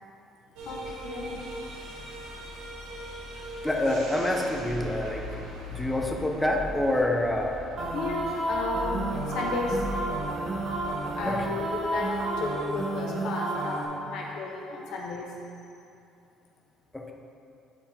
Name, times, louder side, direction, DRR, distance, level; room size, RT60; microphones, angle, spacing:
voice 1, 0.6-2.5 2.9-3.0 3.3-3.4 5.7-6.1 7.9-9.8 11.0-15.3, left 3 dB, 70° left, -1 dB, 0.9 m, -34 dB
sound 1, 0.6-12.7, equal, 80° right, 1.2 m, -40 dB
voice 2, 3.6-5.4 5.7-7.6 11.3-11.5 16.9-17.1, left 1 dB, 10° left, 1 dB, 1.0 m, -27 dB
sound 2, 7.8-13.8, right 2 dB, 55° right, 1.4 m, -31 dB
9.6 x 4.6 x 3.5 m, 2.6 s
supercardioid pair, 70°, 0 cm